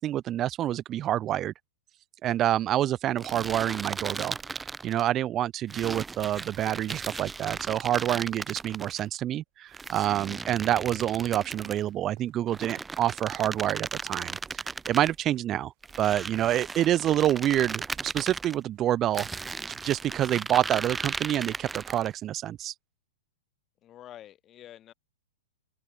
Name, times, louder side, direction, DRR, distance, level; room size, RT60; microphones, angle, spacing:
voice 1, 0.0-1.5 2.2-4.4 4.8-15.7 16.0-19.3 19.8-22.7, right 12 dB, 30° right, 0.4 m, -27 dB
sound 1, 3.2-5.1 5.7-9.0 9.7-11.9 12.5-15.1 15.8-18.6 19.1-22.1, right 4 dB, 10° right, 1.0 m, -36 dB
sound 2, 9.5-22.5, right 32 dB, 45° right, 4.1 m, -64 dB
voice 2, 23.8-24.9, left 12 dB, 30° left, 5.5 m, -47 dB
open air
hypercardioid pair, 110°, 0 cm